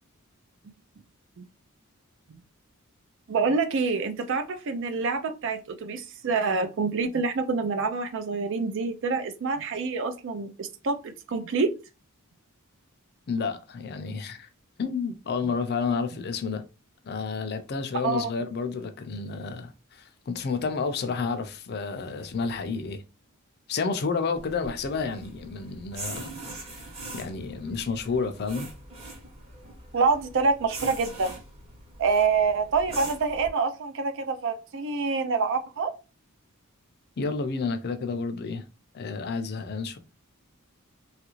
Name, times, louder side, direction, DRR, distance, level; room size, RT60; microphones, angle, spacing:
voice 1, 3.3-11.7 18.0-18.3 29.9-31.4 32.0-35.9, right 4 dB, 60° right, 0.4 m, -26 dB
voice 2, 13.3-14.5 14.8-16.7 17.0-23.0 23.7-26.3 27.1-28.7 37.2-38.6 38.9-40.0, left 4 dB, 50° left, 0.4 m, -30 dB
sound 1, 24.3-33.5, right 2 dB, 30° right, 1.0 m, -42 dB
3.1 x 2.4 x 3.0 m
head